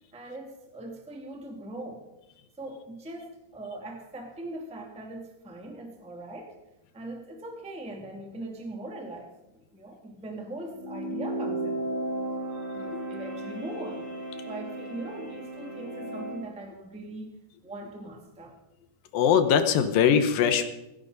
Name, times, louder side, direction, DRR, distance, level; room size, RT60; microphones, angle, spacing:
voice 1, 0.1-2.1 2.6-6.6 6.9-11.8 12.7-14.1 14.4-17.3 17.6-18.5, right 1 dB, 5° right, 2 dB, 1.0 m, -40 dB
sound 1, 10.7-16.5, right 1 dB, 30° right, 3.5 m, -35 dB
voice 2, 19.1-20.7, left 8 dB, 70° left, 9 dB, 2.4 m, -22 dB
16.5 x 16.0 x 4.0 m, 0.95 s
omnidirectional pair, 4.8 m